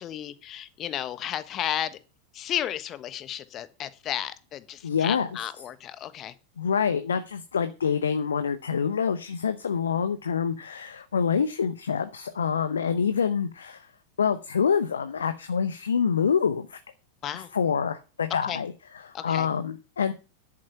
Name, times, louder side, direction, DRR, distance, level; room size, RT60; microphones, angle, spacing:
voice 1, 0.0-2.0 2.3-6.3 17.2-17.5 18.4-18.6 19.1-19.5, left 11 dB, 30° left, 14 dB, 1.2 m, -33 dB
voice 2, 4.8-5.3 6.6-13.9 14.2-16.8 17.5-18.7 19.1-20.1, left 6 dB, 70° left, 10 dB, 0.8 m, -26 dB
11.0 x 8.6 x 5.8 m, 0.32 s
figure-of-eight pair, 90°, 0 cm